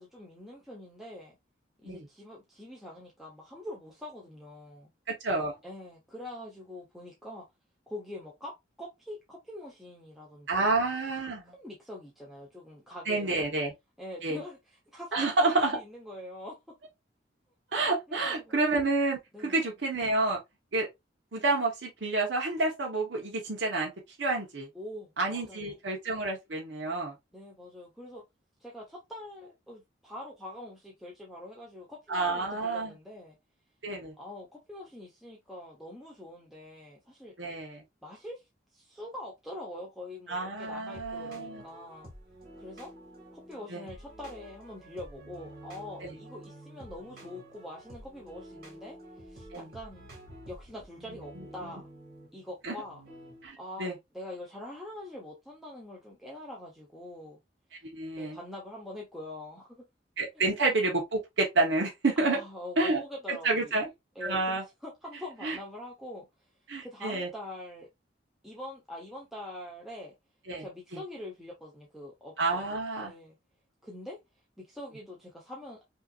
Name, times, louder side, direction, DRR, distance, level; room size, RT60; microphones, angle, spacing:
voice 1, 0.0-1.4 1.8-4.9 5.6-7.4 7.9-8.5 8.8-10.7 11.5-13.5 14.0-16.6 18.1-18.5 19.3-19.7 24.7-25.8 27.3-28.2 28.6-33.4 34.2-37.3 38.0-38.4 38.7-42.1 42.6-42.9 43.3-50.1 50.5-51.9 52.3-53.0 53.6-57.4 58.2-59.8 62.2-63.8 64.1-66.3 66.8-67.9 68.4-70.1 70.6-72.3 73.0-73.4 73.8-74.2 74.6-75.8, left 1 dB, ahead, 0.9 m, -44 dB
voice 2, 5.2-5.5 10.5-11.4 13.1-13.7 14.2-14.4 15.1-15.8 17.7-20.4 20.7-20.9 21.3-23.9 24.2-24.7 25.2-27.1 32.1-32.9 33.8-34.1 37.4-37.8 40.3-41.6 43.7-43.8 46.0-46.2 49.5-49.7 52.6-52.7 53.4-53.9 57.9-58.4 60.2-62.4 62.8-63.0 63.3-63.9 64.2-64.6 65.4-65.6 66.7-67.3 70.5-70.6 70.9-71.0 72.4-73.1, right 3 dB, 70° right, 1.0 m, -29 dB
sound 1, 40.7-53.5, right 1 dB, 50° right, 2.0 m, -50 dB
5.5 x 2.8 x 2.4 m
head